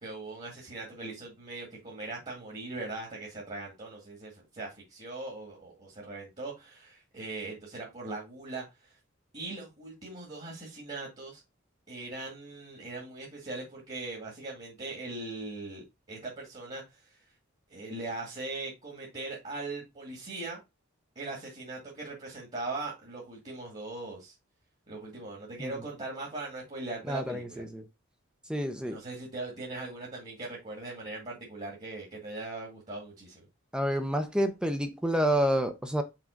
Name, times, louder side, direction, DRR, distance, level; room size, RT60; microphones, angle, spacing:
voice 1, 0.0-9.0 9.3-11.4 11.9-17.2 17.7-20.6 21.2-24.3 24.9-27.6 28.9-33.5, right 2 dB, 35° right, 2.1 m, -40 dB
voice 2, 27.1-27.8 28.5-29.0 33.7-36.0, equal, 5° right, 0.6 m, -29 dB
5.9 x 3.6 x 5.1 m
head